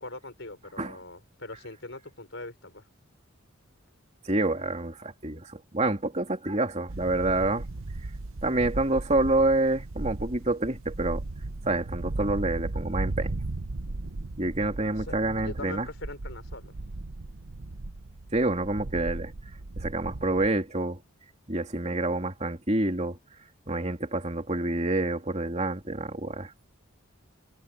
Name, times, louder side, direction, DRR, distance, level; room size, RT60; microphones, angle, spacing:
voice 1, 0.0-2.8 15.1-16.8, left 2 dB, 60° left, 5.9 m, -42 dB
voice 2, 4.2-7.6 8.4-11.2 11.6-13.4 14.4-15.9 18.3-19.3 19.7-21.0 21.5-23.2 23.7-26.5, right 2 dB, 30° right, 2.9 m, -27 dB
sound 1, 6.9-20.6, right 2 dB, 80° right, 1.0 m, -36 dB
head